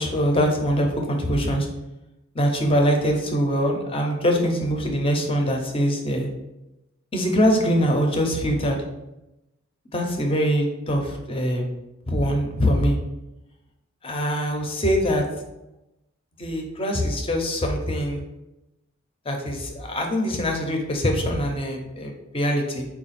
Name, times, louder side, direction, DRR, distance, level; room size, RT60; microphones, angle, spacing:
voice 1, 0.0-1.7 2.3-6.3 7.1-8.8 9.9-11.7 12.1-13.0 14.0-15.2 16.4-18.2 19.3-22.8, equal, 25° left, 2 dB, 0.6 m, -23 dB
4.0 x 2.3 x 4.1 m, 0.95 s
head